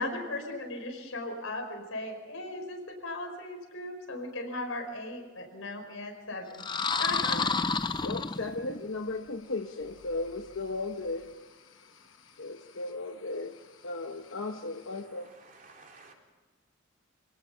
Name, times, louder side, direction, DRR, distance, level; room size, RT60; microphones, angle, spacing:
voice 1, 0.0-6.6 7.0-7.5, left 2 dB, 85° left, 3 dB, 5.1 m, -37 dB
sound 1, 6.5-8.9, left 4 dB, 20° left, 0.6 m, -30 dB
voice 2, 8.0-15.3, left 2 dB, 70° left, 5 dB, 0.9 m, -36 dB
voice 3, 15.3-16.1, right 3 dB, 40° right, 0 dB, 3.8 m, -54 dB
27.0 x 18.0 x 5.6 m, 1.3 s
head